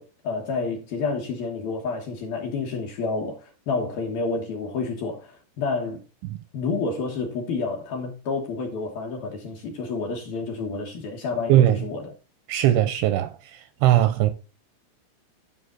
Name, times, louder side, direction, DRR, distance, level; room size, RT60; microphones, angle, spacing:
voice 1, 0.0-6.0 6.5-12.1, left 4 dB, 65° left, 2.5 m, -29 dB
voice 2, 11.5-11.8 12.5-14.3, right 12 dB, 85° right, 2.7 m, -20 dB
13.0 x 5.6 x 3.9 m
omnidirectional pair, 5.8 m